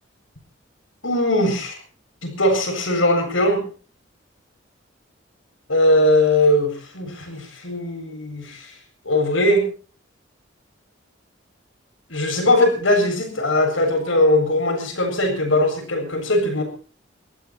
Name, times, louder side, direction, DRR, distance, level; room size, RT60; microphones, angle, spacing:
voice 1, 1.0-1.8 2.2-3.6 5.7-8.7 9.0-9.7 12.1-16.6, left 1 dB, 75° left, 4 dB, 7.6 m, -20 dB
22.5 x 14.5 x 4.5 m, 0.40 s
head